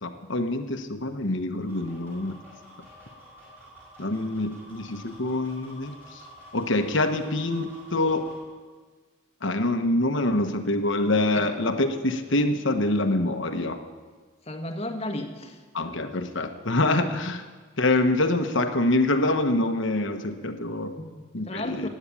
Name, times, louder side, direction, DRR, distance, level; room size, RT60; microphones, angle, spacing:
voice 1, 0.0-2.4 4.0-5.9 6.5-8.2 9.4-13.8 15.7-17.4 17.8-20.9 21.3-21.9, left 2 dB, 55° left, 7 dB, 1.2 m, -25 dB
sound 1, 1.6-8.4, right 1 dB, 10° right, 4.9 m, -49 dB
voice 2, 14.4-15.6 21.0-21.9, left 1 dB, 30° left, 4 dB, 1.4 m, -34 dB
16.0 x 9.6 x 8.5 m, 1.4 s
head